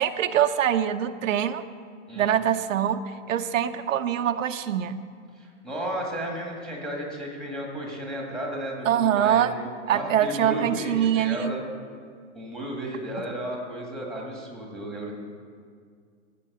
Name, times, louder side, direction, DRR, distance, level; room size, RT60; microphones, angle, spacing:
voice 1, 0.0-1.6 2.2-3.0 3.3-5.0 8.8-9.5 9.9-11.5, right 10 dB, 90° right, 8 dB, 0.8 m, -24 dB
voice 2, 5.3-9.5 9.9-11.7 12.3-15.2, right 1 dB, ahead, -1 dB, 1.6 m, -34 dB
13.0 x 7.6 x 7.7 m, 2.1 s
hypercardioid pair, 170°, 38 cm